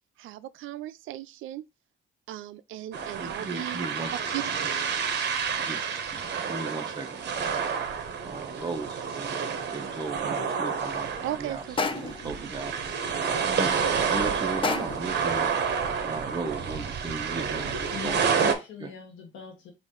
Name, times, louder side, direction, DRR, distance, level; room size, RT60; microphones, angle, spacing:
voice 1, 0.2-1.6 2.3-3.8 4.1-4.4 11.2-12.5, right 14 dB, 80° right, 0.4 m, -37 dB
sound 1, 2.9-18.5, right 6 dB, 60° right, 1.0 m, -29 dB
voice 2, 3.0-4.1 4.9-5.1 5.6-5.8 6.4-7.7 8.2-11.1 11.4-13.0 13.5-13.8 14.1-15.5 16.0-18.4, right 3 dB, 20° right, 0.9 m, -36 dB
sound 2, 11.8-12.3 14.6-15.1, left 4 dB, 25° left, 0.6 m, -29 dB
voice 3, 17.9-19.7, left 8 dB, 90° left, 1.1 m, -40 dB
5.0 x 2.6 x 3.7 m
cardioid pair, 90°, 20 cm